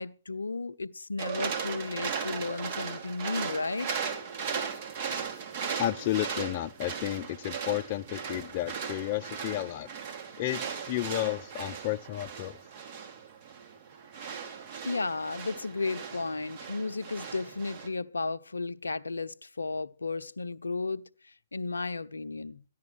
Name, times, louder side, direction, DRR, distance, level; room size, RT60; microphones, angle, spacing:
voice 1, 0.0-3.9 14.8-22.6, left 3 dB, 85° left, 0.7 m, -34 dB
sound 1, 1.2-17.9, right 6 dB, 45° right, 3.1 m, -37 dB
voice 2, 5.8-9.9 10.4-12.6, left 15 dB, 40° left, 0.6 m, -32 dB
14.0 x 11.0 x 6.2 m
figure-of-eight pair, 125°, 0 cm